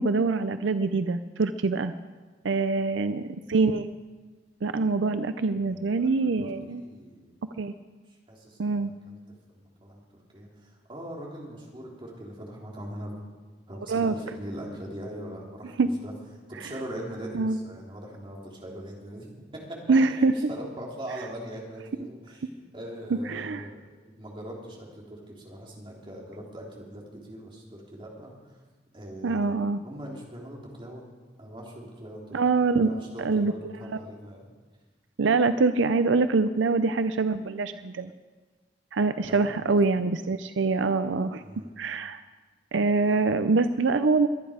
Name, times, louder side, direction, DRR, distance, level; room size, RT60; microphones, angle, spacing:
voice 1, 0.0-1.9 2.4-3.2 3.5-3.9 4.6-6.8 7.6-7.7 8.6-8.9 13.9-14.1 15.8-15.9 17.3-17.6 19.9-20.3 23.1-23.6 29.2-29.8 32.3-33.5 35.2-38.1 38.9-41.4 41.8-42.2 42.7-44.3, right 4 dB, 80° right, 11 dB, 0.5 m, -24 dB
voice 2, 2.7-3.0 5.5-7.4 8.1-9.2 9.5-10.0 10.3-13.1 13.7-16.1 16.5-19.3 19.5-19.8 20.2-28.3 28.9-29.5 29.8-31.0 31.4-32.4 32.7-34.4 39.3-39.6 41.4-41.7, right 1 dB, 30° right, -3 dB, 3.3 m, -41 dB
22.5 x 10.0 x 5.0 m, 1.3 s
head